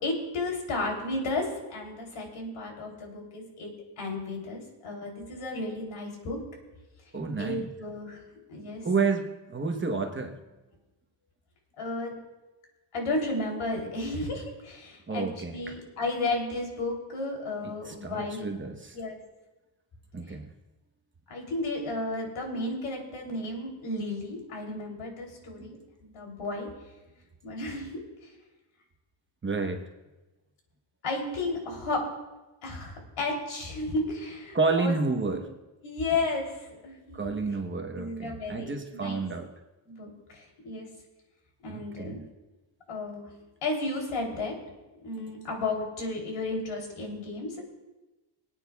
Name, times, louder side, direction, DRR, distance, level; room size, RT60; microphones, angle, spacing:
voice 1, 0.0-3.7 4.0-6.4 7.4-8.2 8.5-8.8 11.8-12.1 12.9-18.4 18.9-19.2 21.3-26.7 27.4-28.3 31.0-32.0 32.6-34.9 35.2-35.4 35.8-37.4 37.9-39.2 39.9-40.9 41.6-42.2 42.9-43.3 43.6-44.5 45.0-47.7, left 2 dB, 85° left, 1 dB, 3.4 m, -33 dB
voice 2, 7.1-7.6 8.8-10.4 15.1-15.7 17.9-19.0 20.1-20.5 25.6-25.7 29.4-29.8 34.5-35.5 37.1-39.5 41.7-42.2, right 4 dB, 25° right, 4 dB, 1.0 m, -30 dB
25.0 x 9.1 x 2.3 m, 1.1 s
cardioid pair, 140°, 49 cm